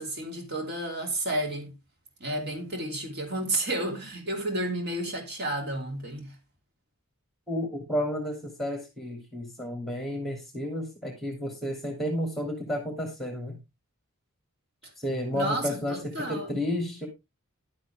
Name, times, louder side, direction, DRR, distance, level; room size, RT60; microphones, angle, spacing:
voice 1, 0.0-1.7 2.2-6.3 15.3-16.6, right 1 dB, 50° right, 3.0 m, -31 dB
voice 2, 7.5-13.6 15.0-17.1, left 1 dB, ahead, 2.7 m, -32 dB
11.5 x 8.0 x 3.5 m
head